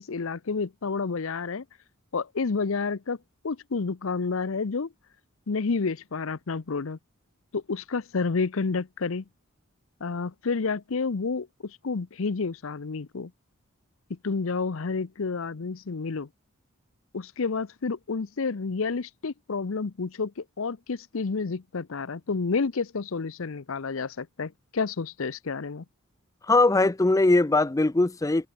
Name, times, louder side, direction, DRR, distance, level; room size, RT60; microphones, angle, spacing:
voice 1, 0.0-1.6 2.1-3.2 3.4-4.9 5.5-7.0 7.5-9.2 10.0-13.3 14.1-16.3 17.1-25.8, left 4 dB, 70° left, 0.7 m, -30 dB
voice 2, 26.5-28.5, left 2 dB, 15° left, 0.4 m, -21 dB
head